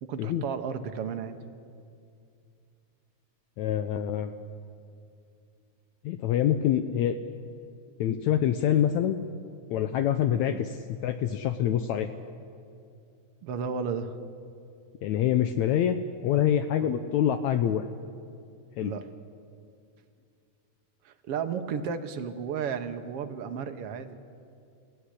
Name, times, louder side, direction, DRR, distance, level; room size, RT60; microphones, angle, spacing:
voice 1, 0.0-1.4 10.5-10.6 13.4-14.2 16.8-16.9 18.8-19.1 21.1-24.1, right 6 dB, 60° right, 8 dB, 1.8 m, -33 dB
voice 2, 3.6-4.3 6.0-7.2 8.0-9.2 9.7-12.1 15.0-16.0 16.2-17.9 18.8-18.9, left 10 dB, 75° left, 9 dB, 1.9 m, -25 dB
28.0 x 16.5 x 10.0 m, 2.5 s
omnidirectional pair, 3.6 m